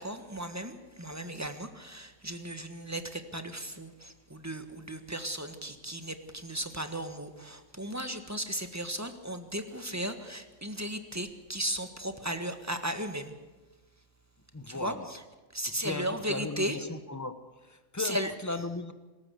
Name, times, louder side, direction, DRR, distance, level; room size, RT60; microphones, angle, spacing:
voice 1, 0.0-13.4 14.7-15.2 15.5-16.8 18.0-18.3, right 1 dB, 10° right, 1.4 m, -36 dB
voice 2, 14.5-15.1 15.8-18.9, left 3 dB, 15° left, 0.9 m, -37 dB
25.0 x 14.0 x 8.1 m
omnidirectional pair, 1.5 m